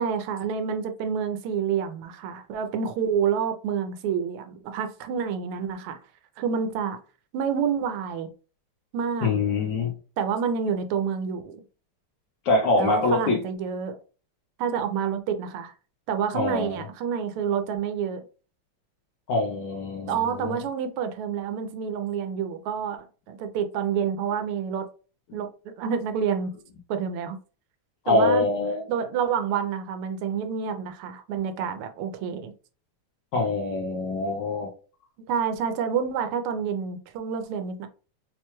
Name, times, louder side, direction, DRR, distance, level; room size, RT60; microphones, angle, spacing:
voice 1, 0.0-6.0 6.4-7.0 7.3-8.3 8.9-9.3 10.2-11.6 12.8-14.0 14.6-15.7 16.1-18.2 20.1-24.9 25.3-25.5 25.8-26.5 26.9-27.4 28.1-28.5 28.9-32.5 35.3-37.9, right 7 dB, 90° right, 1.5 m, -28 dB
voice 2, 9.2-9.9 12.5-13.4 16.3-16.8 19.3-20.5 25.3-25.4 28.0-28.9 33.3-34.7, left 3 dB, 70° left, 1.2 m, -24 dB
4.6 x 2.2 x 2.9 m
omnidirectional pair, 2.4 m